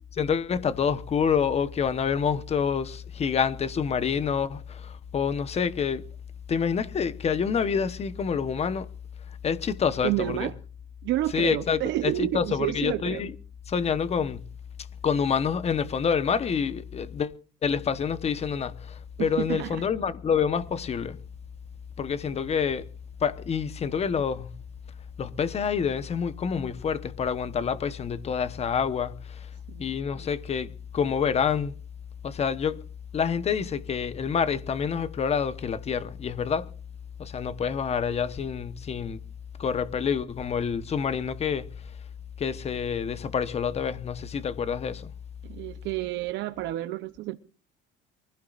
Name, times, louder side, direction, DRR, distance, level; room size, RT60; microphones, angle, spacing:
voice 1, 0.2-6.1 6.5-8.9 9.4-10.5 11.3-13.3 13.7-14.5 15.0-17.3 17.6-21.2 22.0-22.9 23.2-24.5 25.2-29.5 29.8-31.8 32.2-32.8 33.1-36.7 37.2-39.2 39.6-41.7 42.4-45.1, left 6 dB, 30° left, 1.2 m, -27 dB
voice 2, 10.0-10.5 11.0-13.2 19.2-19.8 29.7-29.8 45.4-47.4, right 15 dB, 65° right, 0.9 m, -30 dB
23.5 x 16.0 x 2.6 m
cardioid pair, 130°, 20 cm